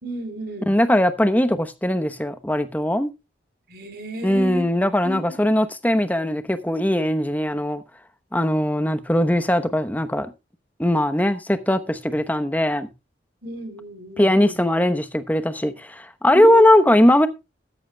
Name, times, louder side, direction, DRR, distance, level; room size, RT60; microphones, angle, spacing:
voice 1, 0.0-0.7 3.7-4.6 5.0-5.2 13.4-14.5 16.3-16.7, equal, 55° right, 3.5 m, -31 dB
voice 2, 0.7-3.1 4.2-7.8 8.3-10.3 10.8-12.9 14.2-17.3, left 1 dB, 10° left, 0.9 m, -20 dB
14.0 x 13.5 x 2.3 m
head